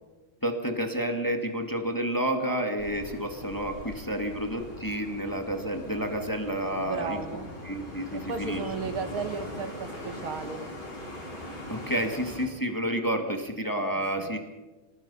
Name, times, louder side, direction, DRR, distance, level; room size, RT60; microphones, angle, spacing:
voice 1, 0.4-8.6 11.7-14.4, right 1 dB, 10° left, 4 dB, 1.9 m, -30 dB
sound 1, 2.8-12.5, left 1 dB, 55° left, 7.2 m, -41 dB
voice 2, 6.8-7.5 8.1-10.6 14.2-14.3, right 5 dB, 80° right, 7 dB, 2.8 m, -34 dB
26.5 x 19.5 x 5.6 m, 1.2 s
omnidirectional pair, 2.3 m